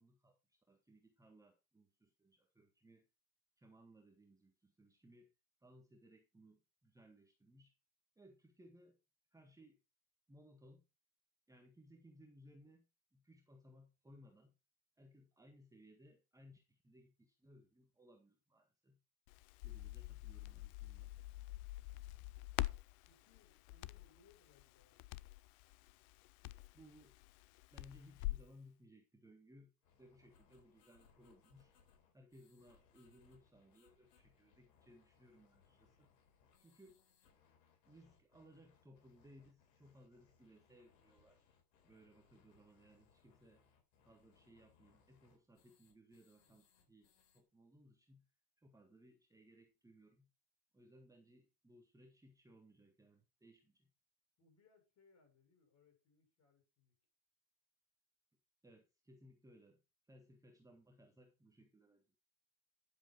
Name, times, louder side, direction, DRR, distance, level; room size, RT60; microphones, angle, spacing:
voice 1, 0.0-3.1 3.6-5.3 5.6-7.8 8.1-9.0 9.3-9.8 10.3-10.9 11.5-12.9 13.1-14.5 15.0-19.0 19.6-21.1 26.7-27.2 27.7-31.7 32.1-36.1 36.6-37.0 37.8-41.5 41.8-43.6 44.0-48.2 48.6-50.3 50.7-53.9 58.6-59.8 60.0-62.2, equal, 5° right, 1.7 m, -64 dB
Crackle, 19.3-28.5, left 19 dB, 60° left, 0.7 m, -46 dB
voice 2, 23.0-25.2 54.4-57.0, left 4 dB, 35° left, 6.5 m, -71 dB
sound 1, 29.8-47.4, left 6 dB, 85° left, 4.3 m, -72 dB
11.0 x 7.6 x 4.5 m
supercardioid pair, 130°, 48 cm